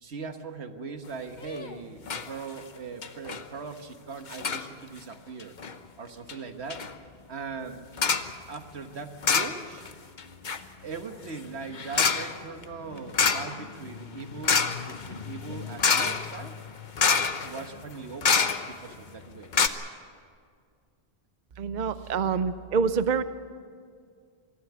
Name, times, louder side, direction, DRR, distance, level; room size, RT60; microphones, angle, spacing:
voice 1, 0.0-5.5 6.0-6.9 7.3-7.8 8.5-9.8 10.8-16.6 17.4-19.7 22.0-22.1, right 4 dB, 80° right, 7 dB, 1.6 m, -40 dB
sound 1, 1.4-1.7 2.1-2.3 2.6-2.7 3.0-3.4 4.3-4.7 5.4-5.7 6.3-6.4 6.7-6.9 8.0-8.3 9.2-9.9 10.2-18.9 19.2-19.3 19.5-19.7, left 5 dB, 50° left, 1.0 m, -27 dB
voice 2, 21.6-23.2, right 5 dB, 50° right, 12 dB, 0.7 m, -26 dB
23.0 x 14.5 x 9.5 m, 2.2 s
omnidirectional pair, 1.1 m